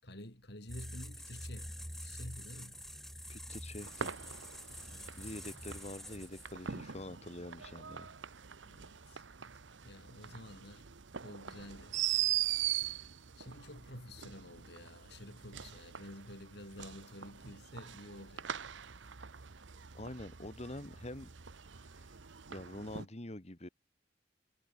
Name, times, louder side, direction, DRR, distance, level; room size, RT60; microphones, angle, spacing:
voice 1, 0.0-2.8 4.9-5.3 8.7-9.2 9.8-10.9 11.2-12.0 13.4-18.7, left 1 dB, 60° left, 6.3 m, -50 dB
sound 1, 0.7-6.7, equal, ahead, 3.8 m, -46 dB
voice 2, 3.3-4.1 5.1-8.1 19.9-21.3 21.8-22.1 22.5-23.7, left 1 dB, 35° left, 1.8 m, -46 dB
sound 2, 3.8-23.1, right 11 dB, 80° right, 1.0 m, -42 dB
head